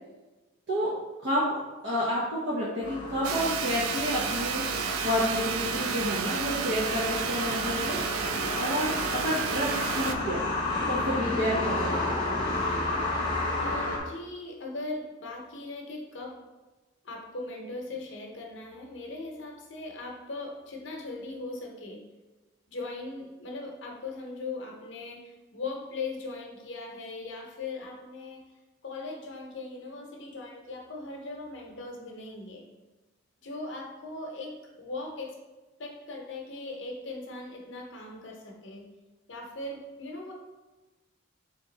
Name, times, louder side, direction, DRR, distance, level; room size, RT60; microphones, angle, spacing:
voice 1, 1.8-8.0 8.5-10.4 10.9-12.1, equal, 60° right, -7 dB, 0.8 m, -30 dB
night atmo, 2.8-14.0, left 2 dB, 25° left, 0.8 m, -32 dB
sound 1, 3.2-10.2, right 6 dB, 85° right, 0.3 m, -31 dB
voice 2, 13.6-16.4 17.0-22.0 22.7-28.4 28.8-32.7 33.4-35.4 35.8-38.9 39.3-40.3, left 3 dB, 60° left, 1 dB, 0.8 m, -39 dB
3.6 x 2.9 x 3.9 m, 1.1 s
head